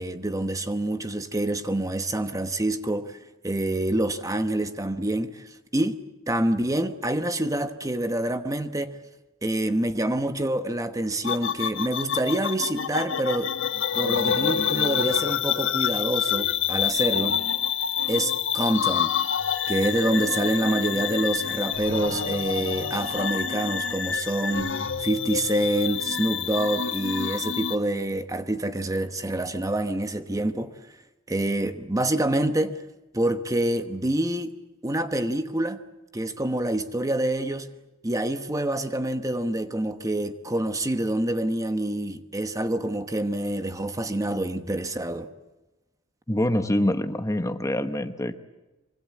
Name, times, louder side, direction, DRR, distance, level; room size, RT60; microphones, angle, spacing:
voice 1, 0.0-3.2 3.4-9.0 9.4-13.5 13.9-17.4 18.1-19.1 19.7-30.7 31.3-32.8 33.1-34.6 34.8-35.8 36.1-37.7 38.0-45.3, right 1 dB, 15° right, 1.1 m, -27 dB
sound 1, 11.2-27.8, left 8 dB, 65° left, 1.5 m, -27 dB
voice 2, 46.3-48.4, left 1 dB, 15° left, 1.0 m, -25 dB
25.0 x 24.5 x 8.4 m
head